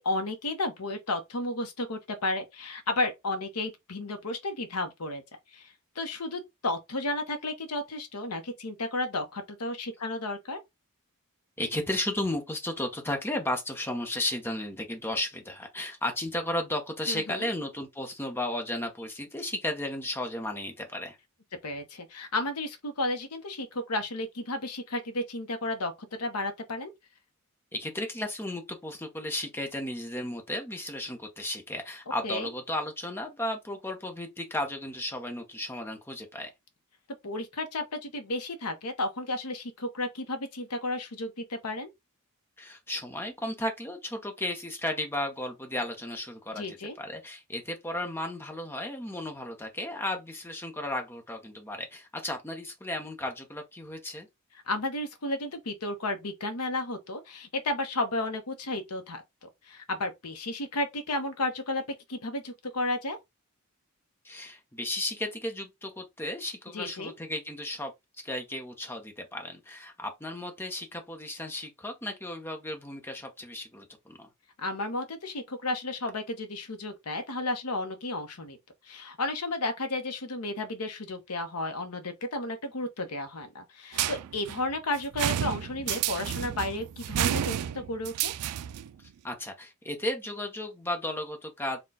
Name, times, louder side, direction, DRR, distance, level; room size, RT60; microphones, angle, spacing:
voice 1, 0.0-5.2 5.5-10.6 17.1-17.5 21.6-25.9 26.2-26.9 32.2-32.5 37.2-41.9 46.5-47.0 54.7-61.8 62.1-63.2 66.7-67.1 74.6-78.6 78.8-88.3, left 2 dB, 90° left, 0.9 m, -33 dB
voice 2, 11.6-21.2 27.7-36.5 42.6-54.3 64.2-67.9 68.2-74.3 89.2-91.8, left 1 dB, 10° left, 0.8 m, -34 dB
sound 1, 83.9-88.9, right 11 dB, 80° right, 0.3 m, -31 dB
4.3 x 2.3 x 3.6 m
head